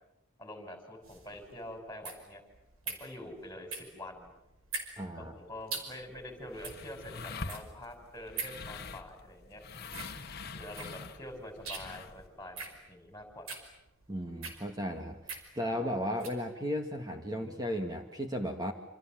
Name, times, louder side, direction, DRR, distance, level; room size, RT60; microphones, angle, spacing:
voice 1, 0.4-2.4 2.9-4.3 5.2-9.6 10.5-13.6, left 1 dB, 10° left, 5 dB, 5.8 m, -46 dB
sound 1, 1.0-16.4, right 4 dB, 80° right, 5.3 m, -44 dB
voice 2, 5.0-5.3 14.1-15.2 15.6-18.7, equal, 20° right, 4 dB, 2.1 m, -35 dB
sound 2, 6.0-12.3, left 4 dB, 50° left, 1.6 m, -45 dB
27.5 x 27.5 x 7.6 m, 0.91 s
head